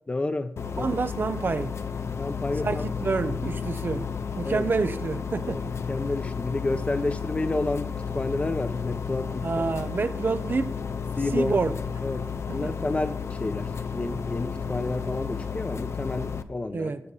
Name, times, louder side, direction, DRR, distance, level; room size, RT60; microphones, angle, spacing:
voice 1, 0.1-1.0 2.2-2.8 4.4-4.7 5.5-5.6 5.9-9.6 11.2-11.6 12.0-16.9, left 2 dB, 25° left, 1.0 m, -30 dB
sound 1, 0.6-16.4, left 6 dB, 65° left, 0.8 m, -32 dB
voice 2, 0.8-1.7 2.6-4.1 4.4-5.7 9.4-10.8 11.3-11.7 12.5-12.7 16.7-17.0, right 4 dB, 45° right, 0.8 m, -28 dB
21.0 x 7.0 x 4.0 m
wide cardioid pair, 165°, 5 cm